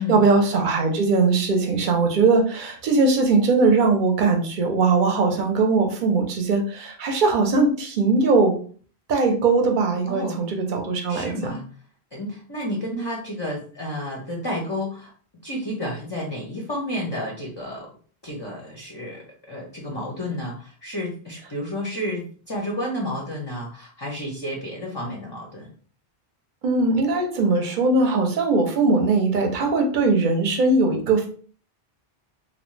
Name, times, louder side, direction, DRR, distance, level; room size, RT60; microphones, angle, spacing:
voice 1, 0.0-8.6 9.1-11.6 26.6-31.3, right 3 dB, 55° right, 3 dB, 0.7 m, -20 dB
voice 2, 10.1-10.4 11.1-11.6 12.1-15.1 15.4-17.9 18.2-25.7, left 1 dB, 30° left, -2 dB, 0.5 m, -31 dB
2.7 x 2.1 x 3.1 m, 0.43 s
omnidirectional pair, 1.0 m